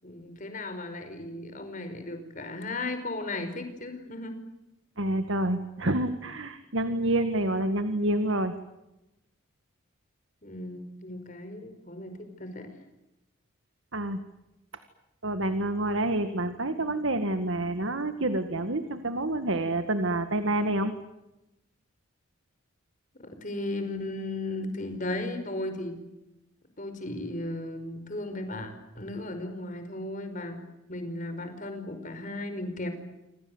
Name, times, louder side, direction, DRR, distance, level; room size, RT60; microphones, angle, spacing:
voice 1, 0.0-4.3 10.4-12.7 23.4-26.0 26.8-30.6 30.9-32.9, left 2 dB, 40° left, 8 dB, 5.3 m, -35 dB
voice 2, 5.0-8.5 13.9-14.2 15.2-20.9, right 1 dB, 65° right, 9 dB, 1.9 m, -28 dB
28.5 x 26.0 x 8.1 m, 0.93 s
head